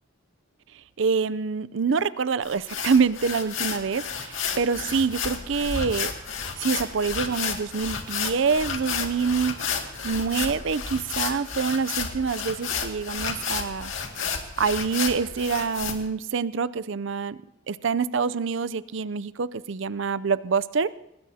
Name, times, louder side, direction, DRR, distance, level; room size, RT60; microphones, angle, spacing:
voice 1, 1.0-6.1 6.6-9.5 10.0-13.9 14.6-17.4 17.7-20.9, right 5 dB, 65° right, 17 dB, 0.5 m, -26 dB
sound 1, 2.4-15.9, left 6 dB, 75° left, 2.1 m, -31 dB
24.5 x 20.0 x 2.8 m, 0.87 s
head